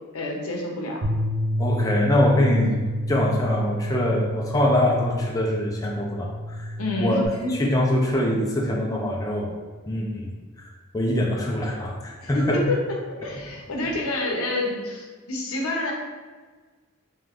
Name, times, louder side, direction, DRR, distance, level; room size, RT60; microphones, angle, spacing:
voice 1, 0.1-1.0 6.8-7.5 12.2-15.9, left 2 dB, 85° left, 0 dB, 0.7 m, -28 dB
Bass guitar, 1.0-7.3, equal, 55° right, 0.8 m, -29 dB
voice 2, 1.6-7.2 7.5-9.5 9.9-12.6, left 1 dB, 15° left, -3 dB, 0.4 m, -24 dB
3.0 x 2.4 x 3.4 m, 1.4 s
head